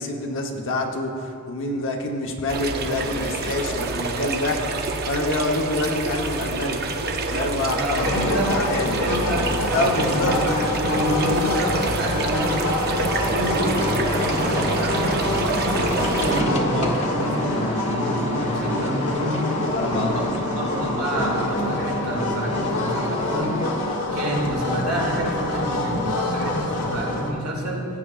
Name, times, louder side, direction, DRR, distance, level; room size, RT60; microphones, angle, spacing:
voice 1, 0.0-4.6 5.1-7.0 7.3-9.0 9.7-10.7 13.1-13.3 19.7-20.2, left 2 dB, 60° left, 2 dB, 1.0 m, -27 dB
sound 1, 2.5-16.4, right 3 dB, 45° right, 0.6 m, -27 dB
voice 2, 7.7-8.5 9.0-12.7 13.3-15.8 16.2-23.6 24.1-27.9, equal, 80° right, -2 dB, 2.0 m, -28 dB
sound 2, 8.0-27.3, left 1 dB, 90° left, 1.2 m, -26 dB
sound 3, 13.8-24.0, left 1 dB, 30° left, 1.0 m, -30 dB
15.5 x 8.6 x 2.4 m, 2.4 s
head